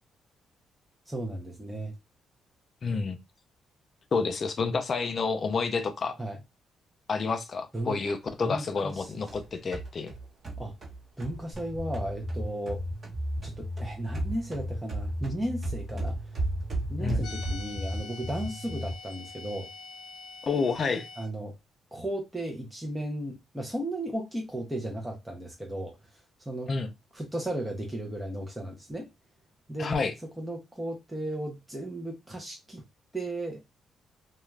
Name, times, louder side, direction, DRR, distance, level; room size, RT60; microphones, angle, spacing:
voice 1, 1.1-1.9 6.2-6.4 7.7-8.0 8.4-9.2 10.6-10.7 11.2-12.8 13.4-16.2 16.9-19.7 21.2-21.6 21.9-26.7 27.1-29.1 29.7-29.9 30.4-32.8 33.1-33.6, right 1 dB, 5° right, 0.6 m, -35 dB
voice 2, 2.8-3.2 4.1-6.2 7.1-10.1 17.0-17.3 20.4-21.1 26.7-26.9 29.8-30.1, left 4 dB, 45° left, 0.4 m, -29 dB
sound 1, 8.9-13.2 13.4-17.8, right 3 dB, 40° right, 1.0 m, -36 dB
sound 2, 11.5-18.9, left 1 dB, 25° right, 1.2 m, -36 dB
sound 3, 17.2-21.3, left 4 dB, 60° left, 0.9 m, -45 dB
2.3 x 2.3 x 3.1 m
cardioid pair, 90°, 0 cm